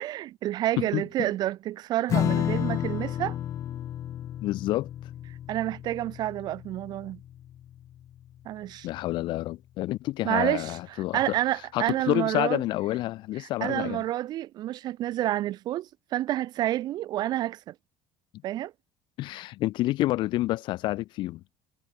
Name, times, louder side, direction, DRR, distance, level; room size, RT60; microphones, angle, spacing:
voice 1, 0.0-3.4 5.5-7.2 8.5-8.9 10.2-12.6 13.6-17.7 18.4-18.7, right 14 dB, 50° right, 2.3 m, -29 dB
voice 2, 0.8-1.3 4.4-4.9 8.8-11.2 11.7-14.0 19.2-21.4, left 17 dB, 55° left, 2.0 m, -28 dB
Strum, 2.1-8.9, left 11 dB, 35° left, 0.4 m, -32 dB
cardioid pair, 175°, 9 cm